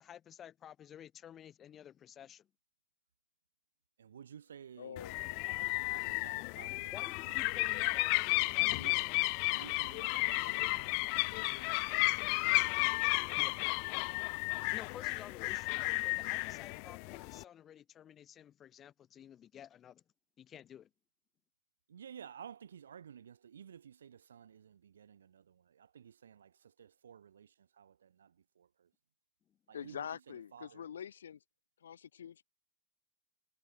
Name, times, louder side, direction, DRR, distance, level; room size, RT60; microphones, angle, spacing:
voice 1, 0.0-2.5 6.9-9.3 13.4-13.5 14.7-20.0 20.4-20.9, left 10 dB, 25° left, 7.8 m, -53 dB
voice 2, 4.0-5.0 5.6-6.9 7.3-7.8 8.7-9.0 9.5-13.6 14.1-14.2 21.9-28.9 29.7-30.9, right 8 dB, 65° right, 7.4 m, -55 dB
voice 3, 4.8-5.4 29.7-31.4 31.8-32.5, left 8 dB, 65° left, 4.4 m, -45 dB
sound 1, 5.0-17.4, left 40 dB or more, 45° left, 1.6 m, -33 dB
figure-of-eight pair, 90°, 0 cm